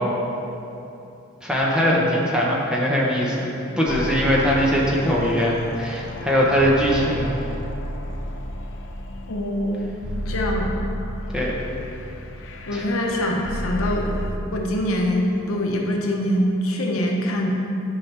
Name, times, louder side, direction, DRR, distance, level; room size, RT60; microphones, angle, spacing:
voice 1, 1.4-3.5 3.8-7.3 11.3-11.5 12.7-12.8, equal, 5° right, -4 dB, 0.8 m, -21 dB
sound 1, 3.9-14.4, equal, 55° left, 0.5 m, -32 dB
voice 2, 9.3-9.9 10.1-10.8 12.7-14.1 14.5-17.5, left 1 dB, 70° left, 0 dB, 0.9 m, -24 dB
9.8 x 5.7 x 3.3 m, 2.8 s
head